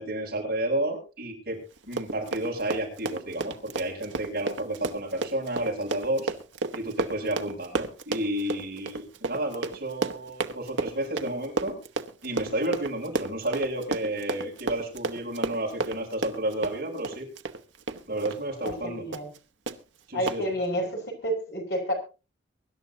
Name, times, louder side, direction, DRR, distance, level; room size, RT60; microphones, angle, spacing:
voice 1, 0.0-1.6 1.8-6.3 6.7-11.8 12.2-17.3 18.1-19.0 20.1-20.4 20.7-20.9, right 1 dB, 50° right, -1 dB, 7.4 m, -31 dB
Run, 1.8-18.4 18.7-18.8 19.1-19.4 19.7-19.8 20.3-20.4, right 3 dB, 85° right, 1.1 m, -32 dB
voice 2, 18.6-19.3 20.1-21.9, equal, 60° left, 1 dB, 5.4 m, -30 dB
24.0 x 11.5 x 2.9 m, 0.33 s
head